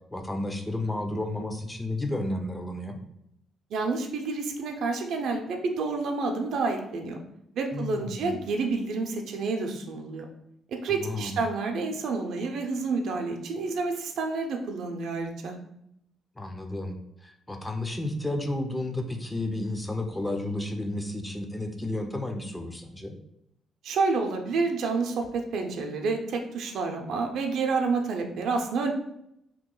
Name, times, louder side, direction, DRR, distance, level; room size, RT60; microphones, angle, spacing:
voice 1, 0.1-3.0 7.7-8.3 10.9-11.4 16.4-17.0 17.2-23.2, left 1 dB, 15° left, 4 dB, 0.4 m, -32 dB
voice 2, 3.7-7.2 7.5-10.3 10.7-15.6 23.8-28.9, right 4 dB, 75° right, 3 dB, 0.5 m, -29 dB
2.9 x 2.2 x 3.7 m, 0.78 s
cardioid pair, 90°, 0 cm